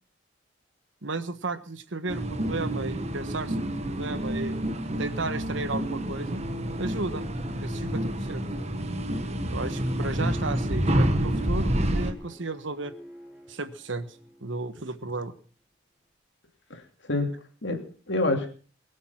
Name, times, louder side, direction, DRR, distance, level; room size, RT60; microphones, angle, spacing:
voice 1, 1.0-4.6 5.0-6.4 6.8-7.3 7.6-8.5 9.5-12.9 13.5-14.1 14.4-15.3, right 3 dB, 70° right, 12 dB, 1.3 m, -34 dB
sound 1, 2.1-12.1, right 1 dB, 35° right, 1.4 m, -28 dB
Bowed string instrument, 10.1-15.2, equal, 10° right, 3.4 m, -46 dB
voice 2, 16.7-18.5, left 2 dB, 60° left, 5 dB, 2.8 m, -28 dB
22.5 x 8.3 x 5.9 m, 0.41 s
head